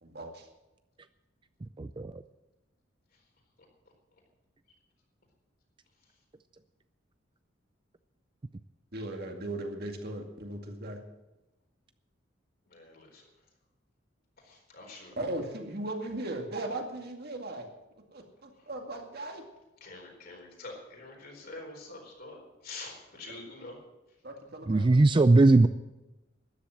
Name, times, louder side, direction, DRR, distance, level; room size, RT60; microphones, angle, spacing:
voice 1, 0.0-0.5 8.9-11.0 15.2-17.7 18.1-19.5 24.2-25.0, right 1 dB, 55° right, 3 dB, 2.2 m, -37 dB
voice 2, 1.8-2.2 24.7-25.7, right 2 dB, 25° right, 11 dB, 0.4 m, -20 dB
voice 3, 12.7-13.2 14.4-15.2 19.8-23.8, left 2 dB, 55° left, 1 dB, 4.3 m, -46 dB
13.0 x 10.5 x 7.7 m, 1.0 s
head